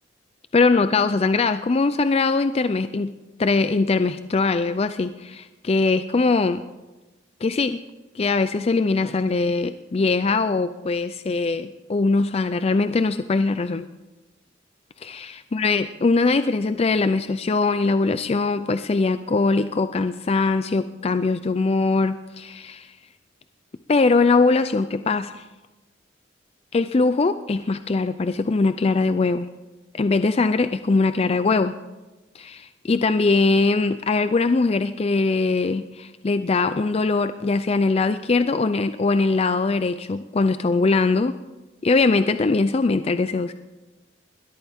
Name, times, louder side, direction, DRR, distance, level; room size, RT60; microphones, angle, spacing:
voice 1, 0.5-3.1 3.4-6.6 7.4-7.8 8.1-13.8 15.0-22.9 23.9-25.5 26.7-29.5 29.9-31.7 32.3-41.3 41.8-43.5, left 3 dB, 30° left, 11 dB, 0.4 m, -21 dB
20.5 x 13.0 x 3.6 m, 1.1 s
head